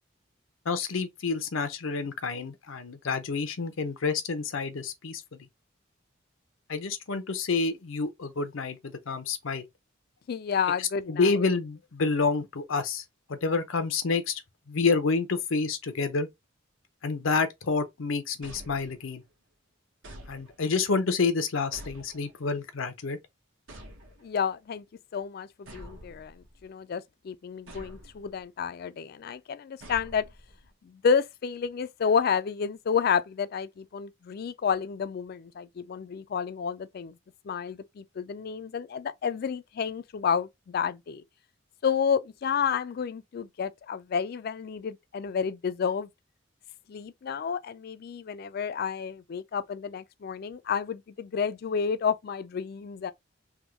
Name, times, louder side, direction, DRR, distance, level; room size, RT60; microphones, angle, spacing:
voice 1, 0.7-5.4 6.7-9.6 10.8-13.0 13.3-14.4 14.7-16.3 17.0-19.2 20.3-23.2, left 4 dB, 85° left, 0.7 m, -28 dB
voice 2, 10.3-11.4 24.2-24.8 25.1-30.3 30.8-37.2 37.4-41.2 41.8-46.1 46.9-53.1, left 6 dB, 50° left, 0.3 m, -30 dB
sound 1, 18.4-19.3 20.0-20.9 21.7-22.6 23.7-24.5 25.7-26.7 27.7-28.4 29.8-30.7, equal, 80° right, 1.1 m, -48 dB
3.5 x 2.2 x 2.9 m
head